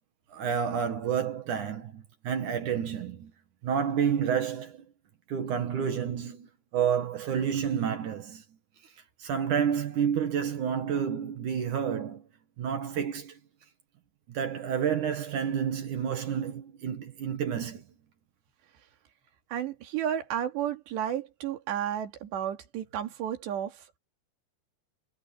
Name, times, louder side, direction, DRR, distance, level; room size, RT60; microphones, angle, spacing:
voice 1, 0.3-3.3 3.6-4.8 5.3-6.5 6.7-8.4 9.2-12.2 12.6-13.4 14.3-17.8, right 8 dB, 60° right, 2.5 m, -29 dB
voice 2, 19.5-24.0, right 10 dB, 85° right, 4.8 m, -32 dB
omnidirectional pair, 4.9 m